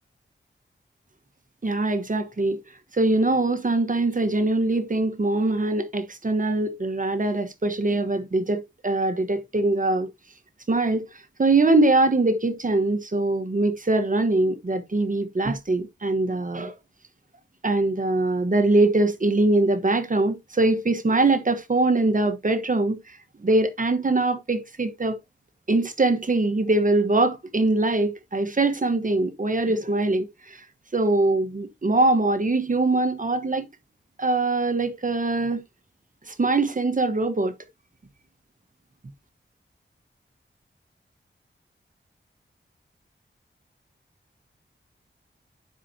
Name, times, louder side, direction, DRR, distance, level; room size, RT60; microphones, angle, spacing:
voice 1, 1.6-2.6 2.9-10.1 10.7-16.8 17.6-25.2 25.7-30.6 30.9-33.7 34.2-35.6 36.3-37.5, right 2 dB, 40° right, 1.2 m, -23 dB
11.0 x 5.6 x 2.8 m
wide cardioid pair, 90°, 20 cm